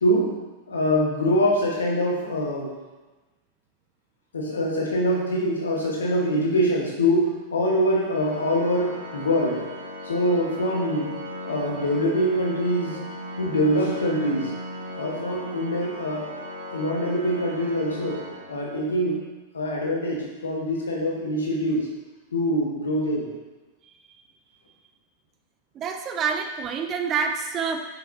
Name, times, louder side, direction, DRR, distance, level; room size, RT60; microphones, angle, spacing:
voice 1, 0.0-0.3 0.7-2.7 4.3-9.6 10.0-11.1 11.4-13.0 13.4-14.5 14.9-16.2 16.7-18.2 18.5-19.2 19.5-21.9 22.3-23.3, equal, 70° left, -2 dB, 1.5 m, -24 dB
Organ, 8.1-19.1, equal, 75° right, 1.1 m, -37 dB
voice 2, 25.7-27.8, right 6 dB, 30° right, 5 dB, 0.6 m, -27 dB
6.3 x 6.2 x 2.9 m, 1.2 s
figure-of-eight pair, 90°, 0 cm